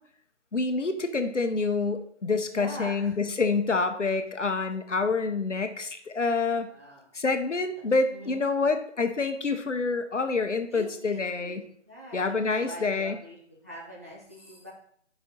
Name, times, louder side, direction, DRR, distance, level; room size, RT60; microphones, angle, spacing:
voice 1, 0.5-6.7 7.1-11.6 12.1-13.2, left 4 dB, 80° left, 8 dB, 1.0 m, -27 dB
voice 2, 2.4-3.4 6.6-7.0 7.8-8.5 10.7-13.4 13.6-14.7, equal, 15° right, -6 dB, 0.6 m, -43 dB
5.4 x 4.9 x 5.5 m, 0.62 s
figure-of-eight pair, 155°, 36 cm